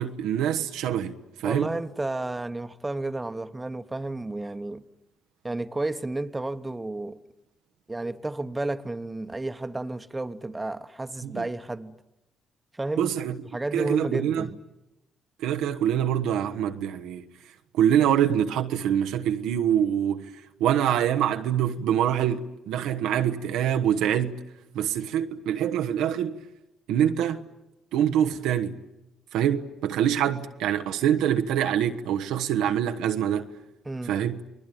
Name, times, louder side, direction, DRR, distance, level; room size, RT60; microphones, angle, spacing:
voice 1, 0.0-1.7 11.2-11.4 13.0-13.4 13.7-14.5 15.4-17.2 17.7-20.3 20.6-24.4 24.7-26.4 26.9-27.4 27.9-28.8 29.3-33.5 34.0-34.4, right 10 dB, 75° right, 1.2 m, -25 dB
voice 2, 1.4-4.8 5.4-7.2 7.9-11.9 12.7-13.1 13.5-14.6 33.8-34.1, right 2 dB, 20° right, 1.4 m, -32 dB
28.5 x 20.5 x 9.3 m
hypercardioid pair, 50°, 0 cm